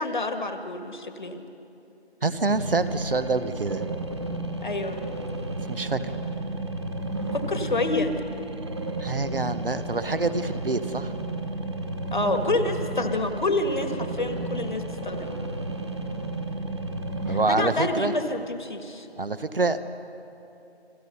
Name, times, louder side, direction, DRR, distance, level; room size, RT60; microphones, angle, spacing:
voice 1, 0.0-1.4 4.6-5.0 7.3-8.1 12.1-15.4 17.3-19.1, left 2 dB, 45° left, 7 dB, 1.7 m, -28 dB
voice 2, 2.2-3.9 5.7-6.1 9.0-11.1 17.3-18.1 19.2-19.8, right 3 dB, 55° right, 12 dB, 1.2 m, -26 dB
sound 1, 2.3-17.5, right 2 dB, 25° right, 1.4 m, -32 dB
30.0 x 22.5 x 5.5 m, 2.8 s
figure-of-eight pair, 175°, 34 cm